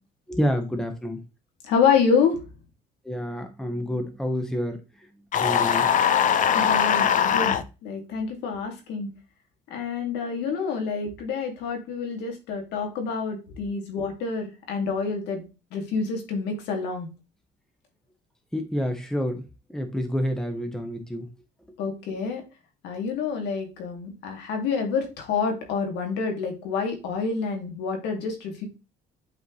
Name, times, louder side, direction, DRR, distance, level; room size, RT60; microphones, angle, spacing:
voice 1, 0.3-1.2 3.0-5.1 5.4-5.9 18.5-19.4 19.7-21.3, equal, 5° left, 5 dB, 1.1 m, -28 dB
voice 2, 1.6-2.4 6.5-7.6 7.8-9.1 9.7-15.4 15.7-17.1 21.8-22.4 22.8-28.6, left 5 dB, 85° left, 3 dB, 2.4 m, -27 dB
sound 1, 5.3-7.6, left 8 dB, 50° left, 0.8 m, -21 dB
8.2 x 4.5 x 3.2 m, 0.30 s
cardioid pair, 110°, 17 cm